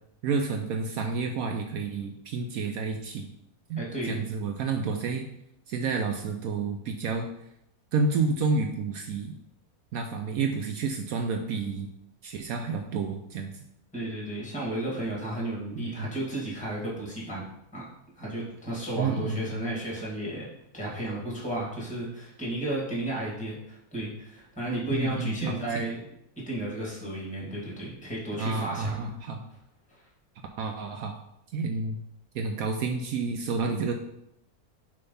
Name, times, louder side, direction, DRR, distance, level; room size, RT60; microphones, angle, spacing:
voice 1, 0.2-3.3 3.7-5.3 5.7-7.3 7.9-9.3 9.9-11.9 12.2-13.5 15.8-16.1 19.0-19.7 24.9-25.9 28.4-29.5 30.6-31.2 31.5-32.0 32.3-33.9, right 4 dB, 70° right, 4 dB, 1.0 m, -30 dB
voice 2, 3.8-4.2 13.9-17.5 17.7-17.8 18.2-20.5 20.7-26.1 26.5-29.1, right 1 dB, 5° left, -4 dB, 2.1 m, -33 dB
6.7 x 3.4 x 5.5 m, 0.81 s
omnidirectional pair, 1.6 m